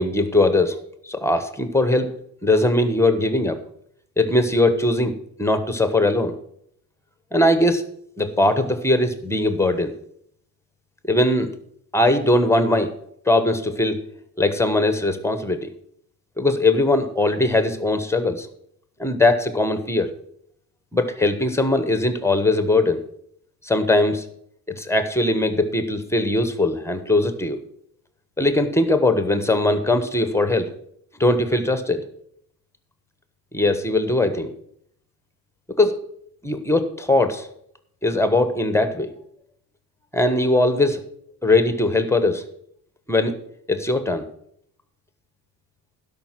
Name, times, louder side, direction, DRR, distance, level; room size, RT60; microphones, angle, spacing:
voice 1, 0.0-2.1 2.4-3.6 4.2-5.1 5.4-6.3 7.3-7.8 8.2-9.9 11.0-11.5 11.9-12.9 13.3-14.0 14.4-15.7 16.4-18.5 19.0-20.1 20.9-23.0 23.6-24.2 24.7-27.6 28.4-30.7 31.2-32.0 33.5-34.5 35.8-36.0 36.4-37.5 38.0-39.1 40.1-41.0 41.4-42.4 43.1-43.4 43.7-44.2, left 2 dB, 5° left, 9 dB, 1.2 m, -20 dB
12.0 x 5.9 x 6.2 m, 0.68 s
cardioid pair, 100°, 39 cm